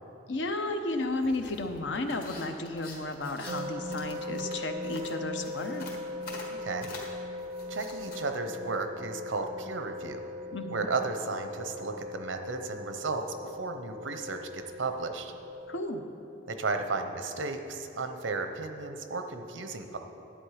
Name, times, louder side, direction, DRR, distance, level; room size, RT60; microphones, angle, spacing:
voice 1, 0.3-5.9 10.5-10.9 15.7-16.0, left 2 dB, 70° left, 6 dB, 0.8 m, -33 dB
sound 1, 0.9-8.2, left 2 dB, 55° left, 1.7 m, -47 dB
sound 2, 3.5-15.8, left 1 dB, 35° right, 0.3 m, -40 dB
voice 2, 6.5-6.9 7.7-10.2 10.7-15.3 16.5-20.0, right 3 dB, 90° right, 6 dB, 0.8 m, -34 dB
11.5 x 8.4 x 4.9 m, 2.9 s
head